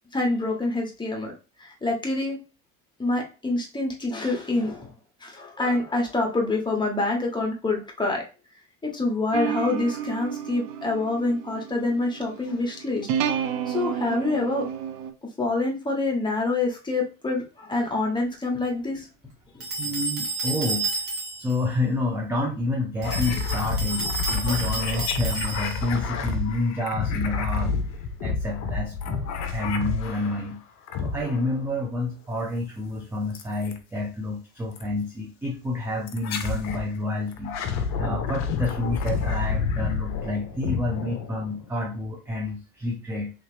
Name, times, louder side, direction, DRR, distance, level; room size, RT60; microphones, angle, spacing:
voice 1, 0.1-1.3 1.6-2.4 3.0-4.9 5.2-8.2 8.8-13.1 13.7-14.6 15.4-19.1, left 2 dB, 10° left, 0 dB, 1.1 m, -26 dB
sound 1, 9.3-15.1, right 9 dB, 50° right, 0.6 m, -31 dB
sound 2, 19.6-21.6 23.0-25.9, right 3 dB, 30° right, 1.4 m, -31 dB
voice 2, 19.8-20.9 21.4-27.8 28.2-30.6 31.0-43.3, left 2 dB, 5° right, -1 dB, 0.6 m, -29 dB
sound 3, 23.0-30.5 30.9-31.6 33.3-33.8 34.8-34.9 36.1-36.9 37.3-41.7, left 5 dB, 40° left, 0.6 m, -29 dB
3.1 x 2.8 x 3.1 m, 0.32 s
figure-of-eight pair, 70°, 45 cm